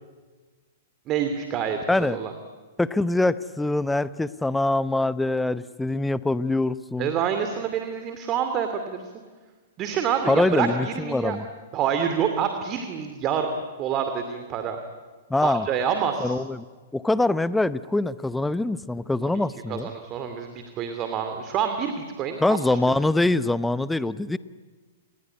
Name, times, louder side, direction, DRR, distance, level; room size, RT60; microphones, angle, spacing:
voice 1, 1.1-2.3 7.0-9.1 9.8-11.4 11.7-14.8 15.4-16.4 19.3-19.4 19.7-23.0, right 7 dB, 35° right, 7 dB, 2.5 m, -27 dB
voice 2, 2.8-7.1 10.3-11.4 15.3-15.7 16.2-16.6 16.9-19.9 22.4-24.4, left 2 dB, 5° left, 16 dB, 0.8 m, -24 dB
29.0 x 20.5 x 9.9 m, 1.4 s
figure-of-eight pair, 110°, 0 cm